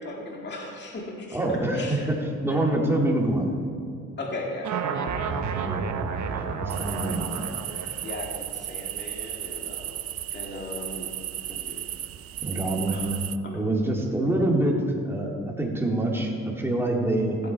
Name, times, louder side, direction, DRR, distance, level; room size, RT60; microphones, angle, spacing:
voice 1, 0.0-2.1 2.5-2.6 4.2-5.2 8.0-10.0 10.3-11.2 11.5-11.9 12.9-13.2 13.4-13.6, left 2 dB, 35° left, -1 dB, 2.0 m, -37 dB
voice 2, 1.3-3.5 5.6-5.9 6.3-7.5 7.8-8.0 11.5-11.6 12.4-13.3 13.5-17.4, right 1 dB, 10° right, -1 dB, 2.2 m, -26 dB
sound 1, 4.6-8.2, right 5 dB, 70° right, 1.1 m, -30 dB
sound 2, 6.7-13.4, right 11 dB, 50° right, 0.5 m, -35 dB
15.5 x 8.4 x 4.5 m, 2.3 s
cardioid pair, 90°, 30 cm